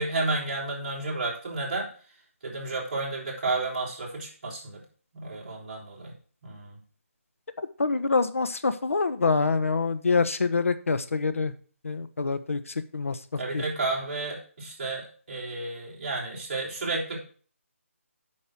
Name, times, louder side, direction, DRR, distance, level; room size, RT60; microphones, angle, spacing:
voice 1, 0.0-1.9 2.4-4.8 5.1-6.1 6.4-6.7 13.4-17.2, right 3 dB, 35° right, -4 dB, 4.1 m, -31 dB
voice 2, 7.8-11.5 11.8-12.6 12.9-13.2 13.5-13.6, left 4 dB, 70° left, 11 dB, 1.2 m, -25 dB
8.8 x 6.4 x 6.2 m, 0.42 s
hypercardioid pair, 175°, 8 cm